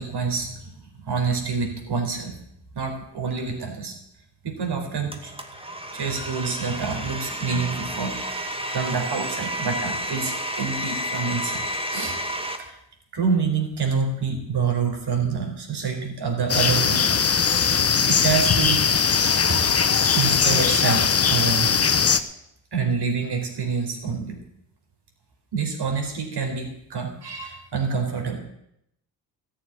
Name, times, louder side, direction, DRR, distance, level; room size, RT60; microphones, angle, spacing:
voice 1, 0.0-2.4 2.7-4.0 4.4-5.3 5.9-8.2 8.7-12.2 12.6-12.8 13.1-17.3 18.1-18.9 19.4-19.6 20.1-21.8 22.7-24.4 25.5-28.4, right 5 dB, 50° right, 3 dB, 4.6 m, -27 dB
Domestic sounds home sounds, 5.1-12.6, equal, 10° right, 2.2 m, -31 dB
sound 1, 16.5-22.2, left 6 dB, 30° left, 1.1 m, -20 dB
13.5 x 7.4 x 9.8 m, 0.77 s
hypercardioid pair, 55°, 49 cm